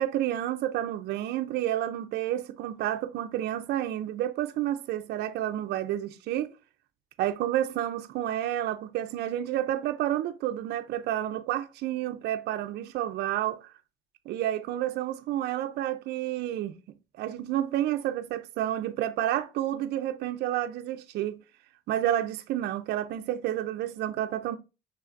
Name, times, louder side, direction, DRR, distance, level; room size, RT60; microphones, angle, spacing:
voice 1, 0.0-6.5 7.2-13.7 14.3-16.8 17.2-21.4 21.9-24.6, right 12 dB, 60° right, 0.5 m, -30 dB
5.7 x 3.5 x 2.5 m
cardioid pair, 155°, 19 cm